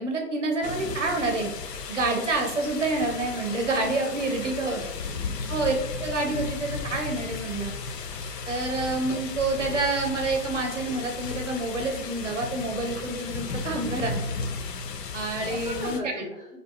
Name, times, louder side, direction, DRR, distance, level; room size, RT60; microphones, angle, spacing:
voice 1, 0.0-1.5 1.9-4.8 5.5-5.7 6.0-7.7 8.5-14.3 15.1-16.0, right 2 dB, 50° right, 3 dB, 0.6 m, -28 dB
sound 1, 0.6-16.0, left 4 dB, 85° left, 0.6 m, -35 dB
voice 2, 4.0-5.3 5.7-5.8 15.0-15.2 15.5-16.6, equal, 40° left, -5 dB, 0.4 m, -39 dB
2.7 x 2.1 x 3.0 m, 0.93 s
hypercardioid pair, 160°, 48 cm